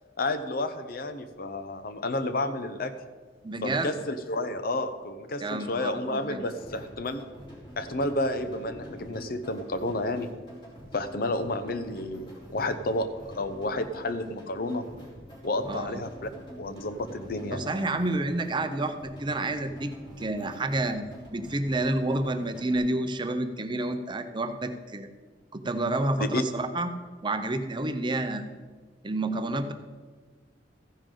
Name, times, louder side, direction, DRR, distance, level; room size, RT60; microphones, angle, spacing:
voice 1, 0.2-2.9 3.6-7.3 7.8-10.3 10.9-14.9 15.4-16.3 16.6-17.7 26.2-26.4, left 2 dB, 55° left, 10 dB, 0.7 m, -31 dB
voice 2, 3.4-4.0 5.4-6.4 15.7-16.0 17.5-21.0 21.3-25.1 25.5-26.9 27.2-28.4 29.0-29.7, right 2 dB, 25° right, 8 dB, 0.6 m, -29 dB
sound 1, 6.1-22.8, equal, 25° left, 3.5 m, -46 dB
14.5 x 10.0 x 3.8 m, 1.4 s
head